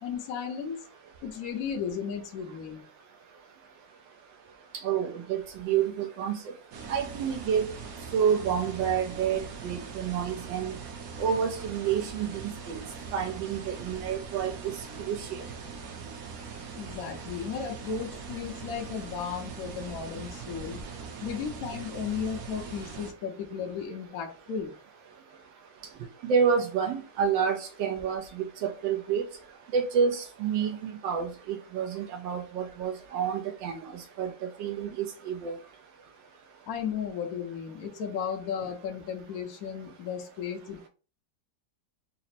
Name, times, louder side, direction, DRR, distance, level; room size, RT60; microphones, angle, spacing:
voice 1, 0.0-0.8 1.2-2.8 16.8-20.8 21.2-24.7 36.7-40.9, left 7 dB, 65° left, 1 dB, 1.0 m, -35 dB
voice 2, 4.8-6.4 6.9-7.6 8.1-10.7 11.2-12.8 13.1-14.7 15.1-15.4 26.3-29.2 29.7-33.8 34.2-35.5, right 7 dB, 85° right, 4 dB, 1.3 m, -29 dB
sound 1, 6.7-23.1, right 5 dB, 60° right, 1.1 m, -41 dB
4.1 x 2.0 x 4.0 m, 0.35 s
omnidirectional pair, 2.0 m